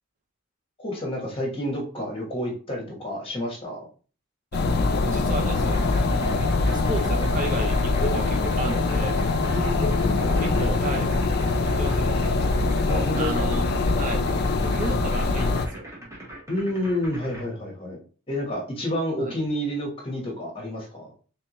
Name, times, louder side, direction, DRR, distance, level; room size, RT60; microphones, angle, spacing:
voice 1, 0.8-3.9 9.5-10.3 12.9-13.5 16.5-18.0 18.3-21.1, left 1 dB, 25° left, -1 dB, 1.1 m, -29 dB
sound 1, 4.5-15.7, left 3 dB, 45° left, 0.4 m, -23 dB
voice 2, 4.5-6.4 6.7-9.2 10.4-11.1 11.7-12.2 13.2-13.6 14.0-14.3 14.6-15.9 19.2-19.4, right 2 dB, 35° right, 3 dB, 0.5 m, -33 dB
sound 2, 5.6-17.4, right 1 dB, 15° right, 1.0 m, -41 dB
3.4 x 3.4 x 2.9 m, 0.40 s
head